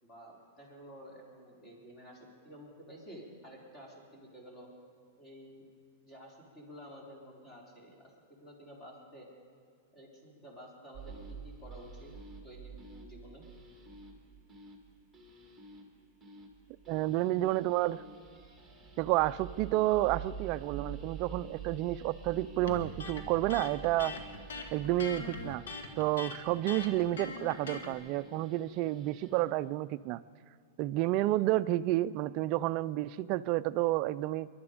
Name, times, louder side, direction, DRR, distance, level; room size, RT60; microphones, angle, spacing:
voice 1, 0.0-4.7 5.2-5.6 6.0-9.3 9.9-12.1 12.4-13.4, equal, 20° left, -2 dB, 3.9 m, -51 dB
sound 1, 10.9-29.4, right 5 dB, 5° right, 2.2 m, -48 dB
voice 2, 16.9-18.0 19.0-24.1 24.7-25.6 26.0-30.2 30.8-34.5, right 16 dB, 45° right, 16 dB, 0.4 m, -30 dB
Electric guitar, 22.7-27.9, left 3 dB, 85° left, 1.6 m, -42 dB
23.0 x 12.0 x 5.1 m, 2.2 s
hypercardioid pair, 140°, 0 cm